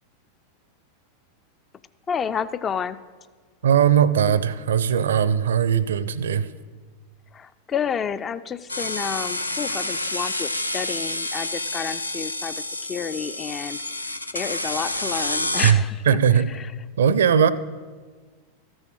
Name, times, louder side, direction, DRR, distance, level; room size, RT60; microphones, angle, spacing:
voice 1, 2.1-3.0 7.3-12.6 12.9-13.8 14.3-16.2 16.5-16.7, left 7 dB, 25° left, 14 dB, 0.4 m, -30 dB
voice 2, 3.6-6.5 15.6-16.5 17.0-17.5, right 8 dB, 65° right, 17 dB, 0.5 m, -19 dB
sound 1, 8.7-15.7, left 2 dB, 85° left, 0.5 m, -29 dB
13.5 x 6.3 x 6.3 m, 1.5 s
figure-of-eight pair, 90°, 0 cm